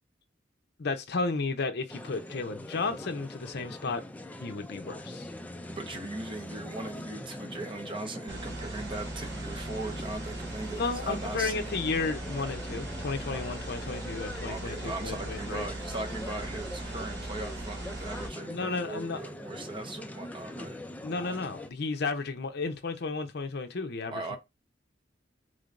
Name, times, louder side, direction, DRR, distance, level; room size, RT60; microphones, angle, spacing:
voice 1, 0.8-4.0 4.4-5.3 10.7-15.7 18.5-19.2 21.0-24.4, left 4 dB, 60° left, 0.6 m, -33 dB
sound 1, 1.9-21.7, left 1 dB, 10° left, 0.3 m, -42 dB
voice 2, 5.7-11.8 13.3-13.4 14.5-20.8 24.1-24.4, right 2 dB, 30° right, 0.8 m, -39 dB
sound 2, 8.3-18.3, right 2 dB, 65° right, 2.2 m, -39 dB
3.8 x 3.3 x 2.5 m
head